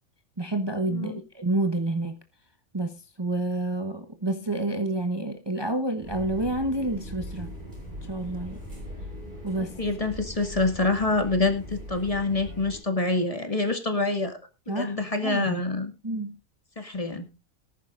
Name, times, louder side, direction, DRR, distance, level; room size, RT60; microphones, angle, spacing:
voice 1, 0.4-2.2 2.7-7.5 8.1-8.6 9.4-9.8 14.7-15.0 15.2-15.5 16.0-16.4, right 2 dB, 20° right, 1.0 m, -29 dB
voice 2, 0.9-1.2 9.6-14.4 14.7-15.9 16.8-17.3, left 3 dB, 30° left, 2.1 m, -26 dB
sound 1, 6.0-12.8, equal, 40° right, 7.3 m, -40 dB
19.5 x 10.5 x 2.5 m
omnidirectional pair, 1.2 m